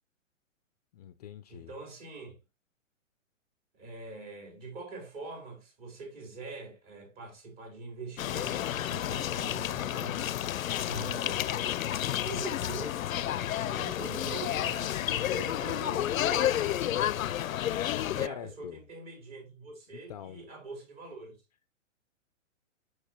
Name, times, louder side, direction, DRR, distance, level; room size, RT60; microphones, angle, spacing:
voice 1, 0.9-1.7 18.2-18.8 19.9-20.4, left 10 dB, 35° left, 0.4 m, -44 dB
voice 2, 1.5-2.3 3.7-10.3 10.8-11.6 12.2-16.7 18.1-21.4, right 3 dB, 40° right, 4.7 m, -44 dB
sound 1, 8.2-18.3, left 12 dB, 85° left, 0.5 m, -31 dB
sound 2, 8.2-14.2, right 5 dB, 15° right, 1.0 m, -57 dB
8.4 x 6.2 x 2.8 m
hypercardioid pair, 130°, 39 cm